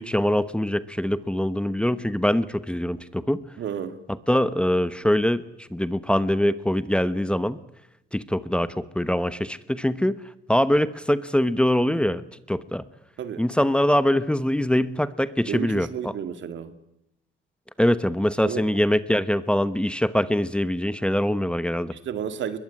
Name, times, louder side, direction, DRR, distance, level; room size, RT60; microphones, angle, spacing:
voice 1, 0.0-3.4 4.3-7.6 8.1-10.2 10.5-12.8 13.4-16.1 17.8-21.9, left 1 dB, 5° left, 1.0 m, -23 dB
voice 2, 3.6-4.0 13.2-13.4 15.5-16.7 18.4-18.6 21.9-22.6, right 8 dB, 70° right, 2.2 m, -31 dB
22.0 x 21.5 x 9.8 m
cardioid pair, 90°, 20 cm